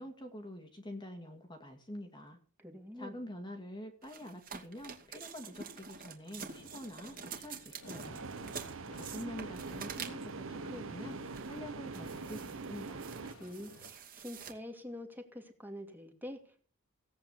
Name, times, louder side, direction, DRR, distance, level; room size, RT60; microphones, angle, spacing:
voice 1, 0.0-2.4 3.0-8.2 8.9-13.1, left 1 dB, 20° left, 4 dB, 2.1 m, -46 dB
voice 2, 2.6-3.1 13.4-16.6, left 1 dB, 10° right, 4 dB, 2.6 m, -46 dB
sound 1, 4.0-10.4 11.0-11.6 11.9-14.5, right 6 dB, 40° right, 2.5 m, -47 dB
sound 2, 6.3-13.9, left 1 dB, 80° left, 3.2 m, -54 dB
sound 3, 8.0-13.3, right 4 dB, 60° right, 0.7 m, -43 dB
17.0 x 8.8 x 7.2 m, 0.41 s
head